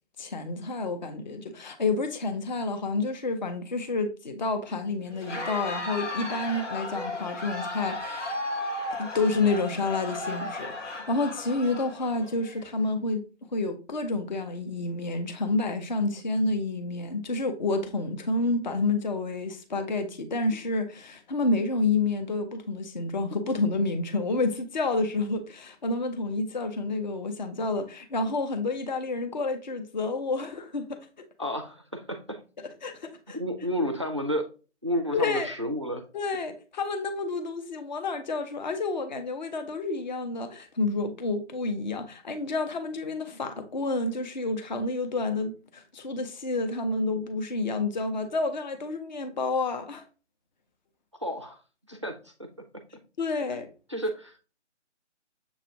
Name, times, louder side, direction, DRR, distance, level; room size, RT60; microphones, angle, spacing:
voice 1, 0.2-8.4 9.0-31.0 32.6-33.4 35.1-35.5 36.1-50.0 53.2-53.7, left 3 dB, 40° left, 0.6 m, -29 dB
Crowd, 5.1-12.6, left 2 dB, 85° left, 1.2 m, -35 dB
voice 2, 31.4-32.4 33.3-34.4 34.8-36.0 51.2-51.6 51.9-52.3 53.5-53.6 53.9-54.4, equal, 25° right, 0.4 m, -31 dB
6.9 x 2.4 x 2.7 m
figure-of-eight pair, 150°, 36 cm